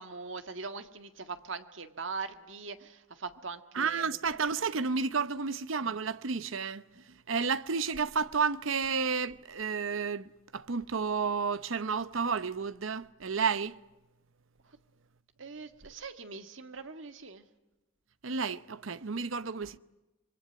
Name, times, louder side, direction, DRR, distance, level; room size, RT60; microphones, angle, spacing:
voice 1, 0.0-4.2 14.7-14.8 15.4-17.4, right 4 dB, 70° right, 1.8 m, -41 dB
voice 2, 3.7-6.8 7.3-13.8 18.2-19.8, right 5 dB, 90° right, 0.9 m, -31 dB
25.5 x 22.5 x 9.6 m
head